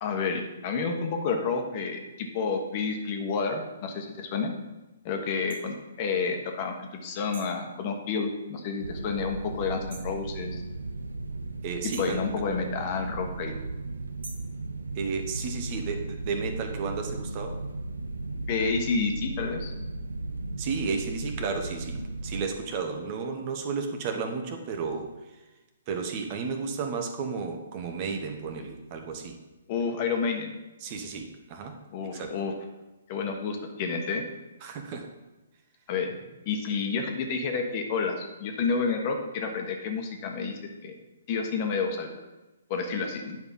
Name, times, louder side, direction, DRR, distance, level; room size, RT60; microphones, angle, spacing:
voice 1, 0.0-4.5 5.0-10.6 11.8-13.5 18.5-19.7 29.7-30.5 31.9-32.5 33.1-34.2 35.9-36.1 36.4-40.9 41.3-42.1 42.7-43.4, left 5 dB, 40° left, 4 dB, 1.4 m, -30 dB
sound 1, 5.5-5.6 7.3-7.6 9.9-10.2 11.9-12.2 14.2-14.5, right 3 dB, 65° right, 2.0 m, -44 dB
sound 2, 8.8-22.5, right 2 dB, 85° right, 0.6 m, -36 dB
voice 2, 11.6-12.4 14.9-17.6 20.6-25.4 25.9-29.4 30.8-32.4 34.6-35.1, right 5 dB, 35° right, 5 dB, 1.3 m, -33 dB
9.3 x 5.3 x 5.5 m, 1.1 s
hypercardioid pair, 130°, 0 cm